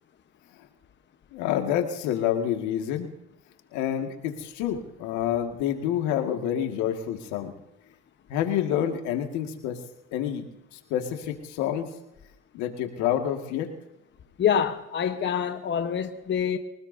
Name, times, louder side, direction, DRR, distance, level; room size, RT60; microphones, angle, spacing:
voice 1, 1.3-3.1 3.7-7.5 8.3-9.8 10.1-10.4 10.9-11.9 12.5-13.7, left 10 dB, 80° left, 2.1 m, -28 dB
voice 2, 14.4-16.6, left 8 dB, 40° left, 1.2 m, -26 dB
23.5 x 19.5 x 2.8 m
supercardioid pair, 85°, 29 cm